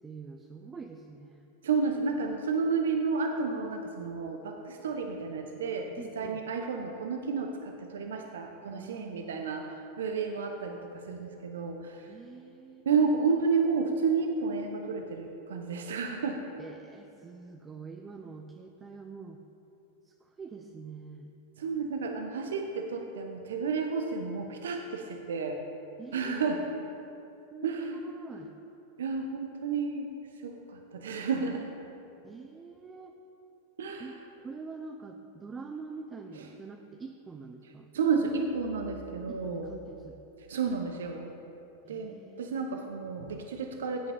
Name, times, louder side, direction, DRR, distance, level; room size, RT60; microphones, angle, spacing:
voice 1, 0.0-1.5 6.0-6.4 8.7-9.5 12.1-12.9 16.6-19.4 20.0-21.3 26.0-26.9 27.5-28.5 32.2-33.2 34.0-37.9 39.3-40.2 41.8-42.7, right 4 dB, 20° right, 4 dB, 0.7 m, -45 dB
voice 2, 1.6-12.1 12.9-16.4 21.6-25.6 26.1-26.6 27.6-28.0 29.0-30.1 30.4-31.7 33.8-34.1 36.4-36.5 37.9-39.7 40.5-41.3 41.9-44.1, right 5 dB, 75° right, 4 dB, 0.8 m, -31 dB
15.5 x 8.3 x 3.5 m, 2.9 s
hypercardioid pair, 95°, 0 cm